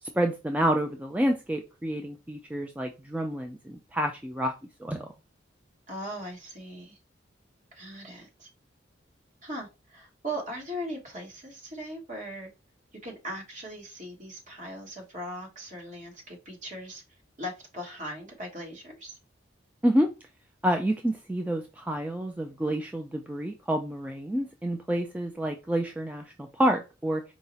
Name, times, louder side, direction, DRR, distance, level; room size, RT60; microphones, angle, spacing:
voice 1, 0.0-4.5 4.8-5.1 19.8-20.1 20.6-27.2, equal, 10° right, 3 dB, 0.3 m, -28 dB
voice 2, 5.9-7.0 7.7-8.5 9.4-12.5 13.0-17.0 17.4-19.2, equal, 45° right, 1 dB, 1.4 m, -39 dB
4.6 x 2.0 x 4.0 m, 0.28 s
head